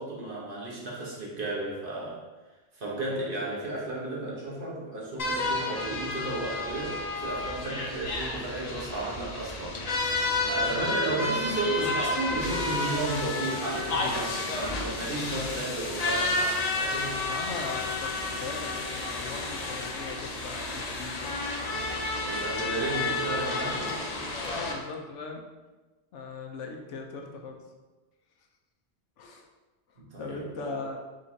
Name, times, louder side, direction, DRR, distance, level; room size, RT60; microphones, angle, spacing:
voice 1, 0.0-2.2 2.7-17.2 22.2-24.1 30.0-30.8, right 2 dB, 50° right, -4 dB, 1.2 m, -33 dB
sound 1, 5.2-24.7, left 2 dB, 45° left, 0.6 m, -31 dB
voice 2, 11.0-11.3 17.2-21.4 23.3-23.4 24.2-25.4 26.1-27.6 29.2-29.5 30.2-31.0, left 4 dB, 90° left, 3 dB, 1.0 m, -39 dB
5.0 x 3.7 x 2.7 m, 1.2 s
omnidirectional pair, 1.2 m